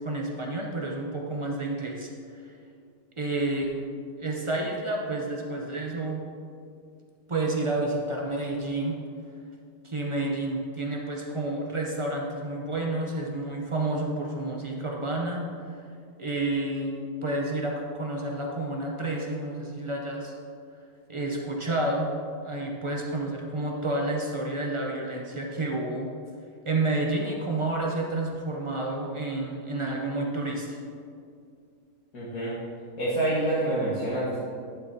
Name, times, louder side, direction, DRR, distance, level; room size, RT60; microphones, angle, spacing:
voice 1, 0.0-2.4 3.2-3.8 4.2-6.2 7.3-9.0 9.8-15.8 16.2-16.9 17.2-20.3 21.1-22.1 22.4-26.1 26.6-30.8, right 2 dB, 50° right, -1 dB, 0.3 m, -30 dB
voice 2, 32.1-32.5 33.0-34.4, right 1 dB, 65° left, -10 dB, 2.0 m, -27 dB
11.0 x 6.5 x 2.7 m, 2.3 s
omnidirectional pair, 1.7 m